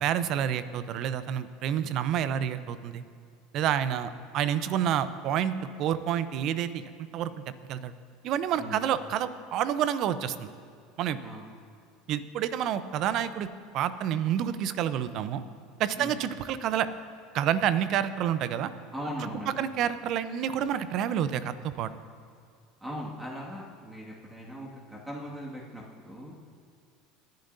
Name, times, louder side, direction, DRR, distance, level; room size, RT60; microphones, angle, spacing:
voice 1, 0.0-3.0 3.5-6.8 7.1-7.3 7.7-7.9 8.2-10.5 11.0-11.2 12.1-13.5 13.7-15.4 15.8-16.9 17.3-18.7 19.6-21.9, right 10 dB, 55° right, 13 dB, 0.7 m, -28 dB
voice 2, 18.9-19.5 22.8-26.3, equal, 10° right, -4 dB, 2.0 m, -39 dB
29.0 x 10.5 x 2.7 m, 2.2 s
hypercardioid pair, 80°, 0 cm